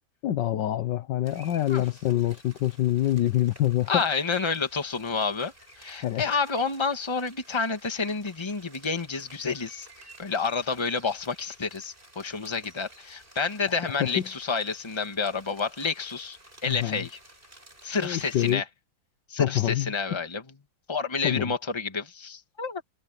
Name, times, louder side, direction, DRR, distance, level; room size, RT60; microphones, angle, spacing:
voice 1, 0.2-4.0 6.0-6.4 13.7-14.3 16.7-17.1 18.0-18.6 19.4-19.9 21.2-21.5, left 13 dB, 70° left, 1.5 m, -26 dB
sound 1, 1.2-18.6, right 1 dB, 25° right, 7.4 m, -53 dB
voice 2, 3.9-9.9 10.2-17.2 17.8-18.6 19.3-20.4 20.9-22.8, left 4 dB, 15° left, 1.6 m, -29 dB
omnidirectional pair, 2.1 m